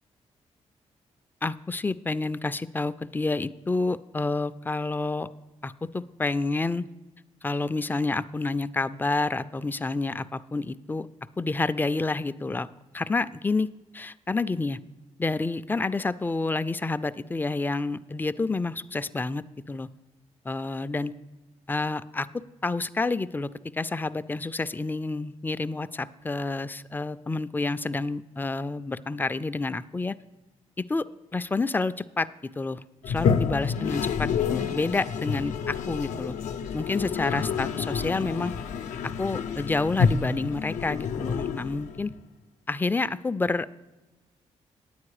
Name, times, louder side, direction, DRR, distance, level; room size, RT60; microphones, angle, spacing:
voice 1, 1.4-5.3 5.6-6.9 7.4-11.1 11.4-12.7 12.9-13.7 13.9-14.8 15.2-19.9 20.5-21.1 21.7-30.2 30.8-31.0 31.3-32.3 32.6-36.3 36.7-38.5 39.0-42.1 42.7-43.8, left 3 dB, 15° left, 13 dB, 0.4 m, -29 dB
Toilet flush, 33.0-42.1, left 6 dB, 80° left, 0.5 m, -29 dB
9.4 x 8.6 x 4.8 m, 1.1 s
cardioid pair, 65°, 13 cm